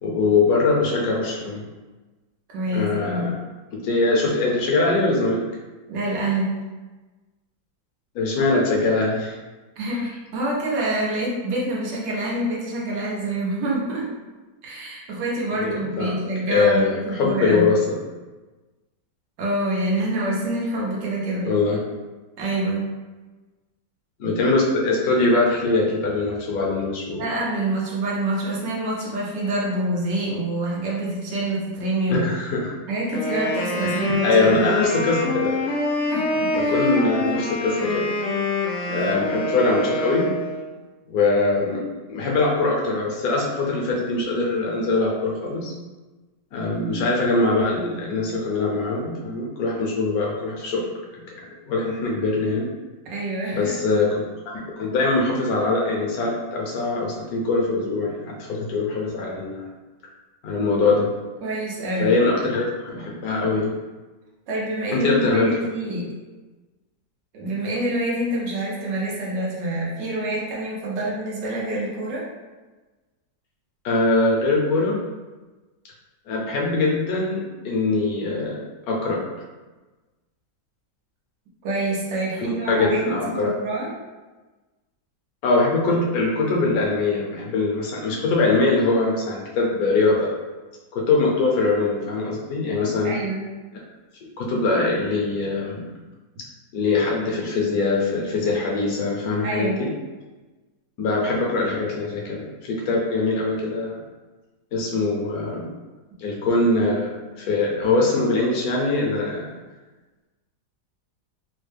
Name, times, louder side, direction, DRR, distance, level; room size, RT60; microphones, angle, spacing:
voice 1, 0.0-1.6 2.7-3.3 3.8-5.4 8.1-9.4 15.6-16.2 16.5-18.0 21.4-21.8 24.2-27.2 32.1-32.7 33.8-35.7 36.5-38.1 38.8-40.3 41.1-41.8 42.1-45.7 46.5-50.8 51.1-51.2 51.7-52.7 53.5-59.6 60.4-61.1 62.0-63.7 64.9-65.5 73.8-75.0 76.3-78.6 78.9-79.2 82.4-83.5 85.4-90.3 90.9-93.1 94.4-95.8 96.7-99.9 101.0-104.0 104.7-105.7 106.2-107.1 107.4-109.5, left 3 dB, 65° left, -2 dB, 1.1 m, -22 dB
voice 2, 2.5-3.4 5.9-6.6 9.8-14.1 14.6-17.8 19.4-21.5 22.4-22.9 27.2-32.3 32.9-34.7 36.1-36.7 39.0-39.1 53.0-53.7 61.4-62.1 64.5-66.0 67.3-72.2 81.6-83.9 93.0-93.5 99.4-99.9, right 1 dB, 90° right, -5 dB, 1.5 m, -26 dB
Wind instrument woodwind instrument, 33.1-40.7, left 2 dB, 80° left, 0.6 m, -25 dB
3.6 x 2.1 x 3.2 m, 1.2 s
omnidirectional pair, 1.9 m